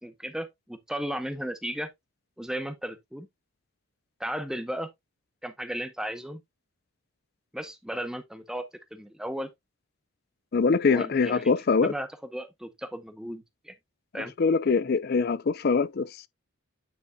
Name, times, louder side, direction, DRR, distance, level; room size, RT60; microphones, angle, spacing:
voice 1, 0.0-1.9 2.4-3.3 4.2-4.9 5.4-6.4 7.5-9.5 10.9-11.5 11.8-13.7 14.1-14.3, equal, 5° right, 0.7 m, -35 dB
voice 2, 10.5-11.9 14.4-16.3, left 4 dB, 45° left, 0.4 m, -23 dB
9.5 x 5.3 x 2.2 m
head